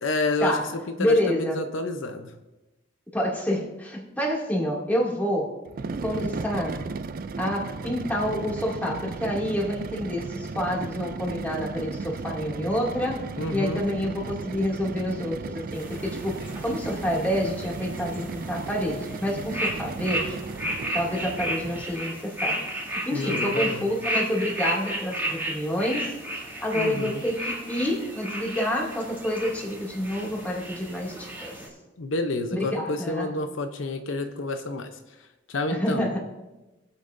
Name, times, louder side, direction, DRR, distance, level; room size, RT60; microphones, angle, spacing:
voice 1, 0.0-2.3 13.4-13.8 23.1-23.9 26.7-27.2 32.0-34.9 35.5-36.2, left 2 dB, 75° left, 6 dB, 0.8 m, -29 dB
voice 2, 1.0-1.6 3.1-5.6 6.0-6.8 7.4-13.2 13.5-20.4 20.9-22.6 22.9-31.6 32.5-33.3 35.7-36.2, equal, 10° left, -3 dB, 2.4 m, -28 dB
sound 1, 5.7-22.1, right 4 dB, 45° right, 0.4 m, -35 dB
sound 2, 15.7-31.7, right 1 dB, 10° right, 2.9 m, -33 dB
22.5 x 8.3 x 2.6 m, 1.1 s
head